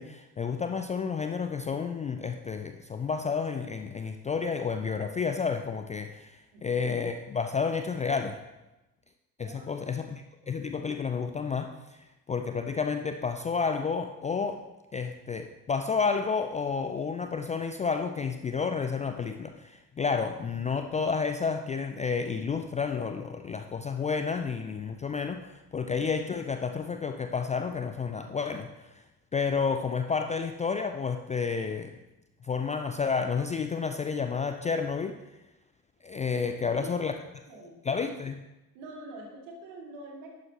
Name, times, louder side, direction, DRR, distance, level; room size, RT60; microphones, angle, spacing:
voice 1, 0.0-8.4 9.4-12.0 12.3-14.6 14.9-29.0 29.3-31.9 32.4-35.2 36.0-37.1 37.8-38.4, left 5 dB, 15° left, 7 dB, 0.3 m, -30 dB
voice 2, 6.5-6.9 9.4-9.7 36.7-36.9 37.5-37.8 38.7-40.3, right 2 dB, 65° right, -1 dB, 2.6 m, -45 dB
11.5 x 9.0 x 3.0 m, 1.0 s
figure-of-eight pair, 55°, 49 cm